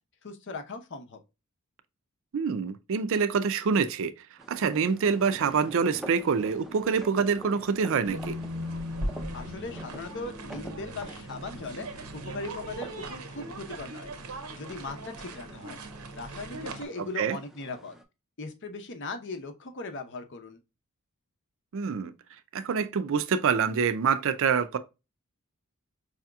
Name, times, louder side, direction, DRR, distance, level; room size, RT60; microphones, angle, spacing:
voice 1, 0.2-1.2 9.3-14.1 14.6-15.8 16.1-18.0 18.4-20.6, left 3 dB, 55° left, 0.7 m, -39 dB
voice 2, 2.3-4.1 4.5-8.3 17.2-17.4 21.7-22.1 22.5-24.8, right 6 dB, 60° right, 0.4 m, -26 dB
sound 1, 4.4-18.0, right 1 dB, ahead, 0.4 m, -48 dB
sound 2, 8.0-16.8, right 1 dB, 90° right, 0.8 m, -38 dB
4.9 x 2.8 x 2.2 m
head